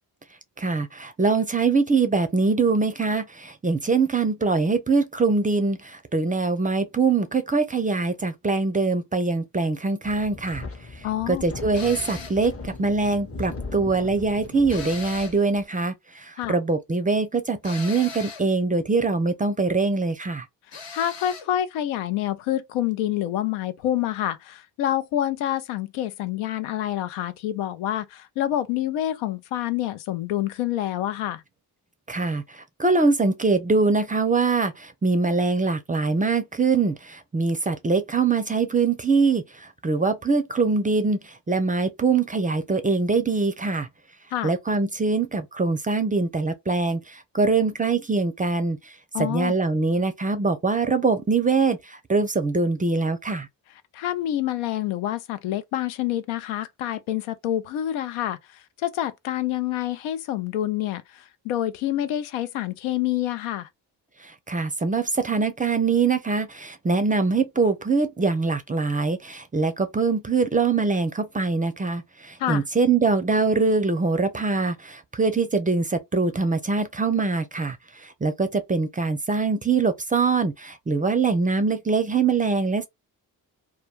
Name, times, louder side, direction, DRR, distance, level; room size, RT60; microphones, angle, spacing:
voice 1, 0.6-10.6 10.9-20.5 32.1-43.9 44.4-53.5 64.2-82.9, right 4 dB, 20° right, 0.4 m, -23 dB
Wind, 10.0-15.6, left 3 dB, 30° left, 0.8 m, -38 dB
voice 2, 11.0-11.4 16.4-16.6 20.7-31.4 44.3-44.5 49.1-49.5 53.9-63.7 72.4-72.6, left 12 dB, 80° left, 0.6 m, -27 dB
sound 1, 11.7-12.5 14.7-15.5 17.6-18.5 20.7-21.5, left 5 dB, 60° left, 1.1 m, -38 dB
2.2 x 2.2 x 3.1 m
hypercardioid pair, 40°, 49 cm